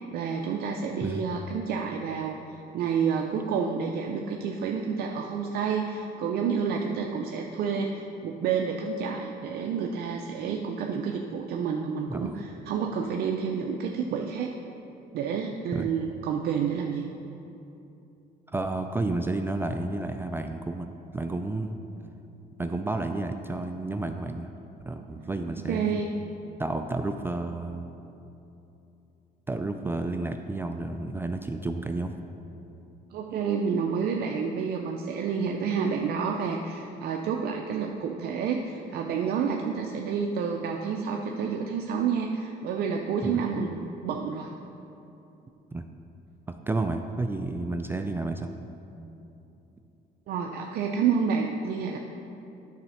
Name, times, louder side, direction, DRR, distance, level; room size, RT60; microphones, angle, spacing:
voice 1, 0.1-14.5 15.1-17.1 25.3-25.4 25.7-26.1 33.1-44.5 50.3-52.0, right 6 dB, 65° right, 2 dB, 0.5 m, -29 dB
voice 2, 18.5-21.8 22.6-24.5 24.9-26.0 26.6-27.9 29.5-32.1 43.2-43.7 45.7-45.9 46.5-48.5, right 2 dB, 15° right, 6 dB, 0.3 m, -31 dB
9.6 x 4.2 x 5.7 m, 2.9 s
cardioid pair, 110°, 17 cm